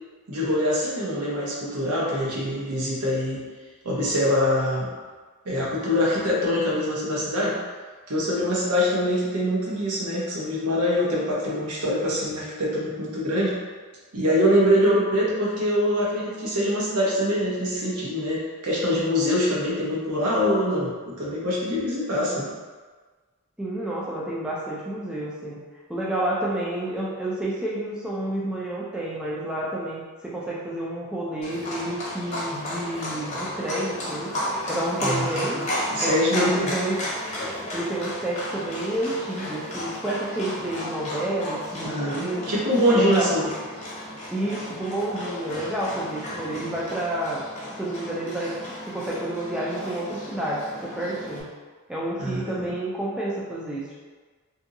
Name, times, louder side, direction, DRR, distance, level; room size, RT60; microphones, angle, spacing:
voice 1, 0.3-3.4 3.8-4.9 5.5-7.6 8.1-13.5 14.1-22.5 35.0-35.6 35.9-36.8 41.8-43.5 52.2-52.7, equal, 80° right, -5 dB, 0.8 m, -24 dB
voice 2, 23.6-25.6 25.9-34.3 34.7-37.0 37.7-42.5 42.9-43.3 44.3-47.4 47.8-51.5 51.9-54.0, right 1 dB, 5° right, -6 dB, 0.3 m, -30 dB
Livestock farm animals working animals, 31.4-51.4, left 1 dB, 30° left, 0.7 m, -33 dB
2.7 x 2.6 x 2.6 m, 1.4 s
head